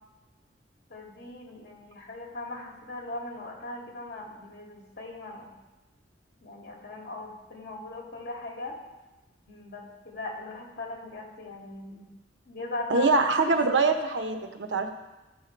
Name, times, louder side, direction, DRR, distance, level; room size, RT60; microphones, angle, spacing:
voice 1, 0.9-5.5 6.4-8.8 9.5-12.1 12.5-13.1 13.5-13.6, left 2 dB, 60° left, -1 dB, 2.3 m, -39 dB
voice 2, 12.9-14.9, right 3 dB, 80° right, 6 dB, 0.9 m, -24 dB
14.5 x 5.5 x 4.6 m, 1.1 s
head